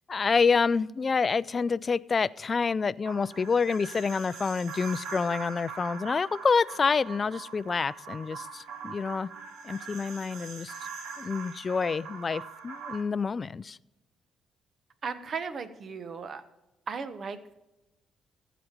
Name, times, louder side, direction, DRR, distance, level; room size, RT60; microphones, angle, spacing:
voice 1, 0.1-9.3 9.6-10.7 11.2-13.8, left 5 dB, 35° left, 0.3 m, -27 dB
sound 1, 3.0-13.0, right 6 dB, 85° right, 1.3 m, -42 dB
voice 2, 15.0-16.4 16.9-17.5, right 5 dB, 50° right, 1.1 m, -36 dB
14.5 x 5.1 x 5.9 m
cardioid pair, 90°, 0 cm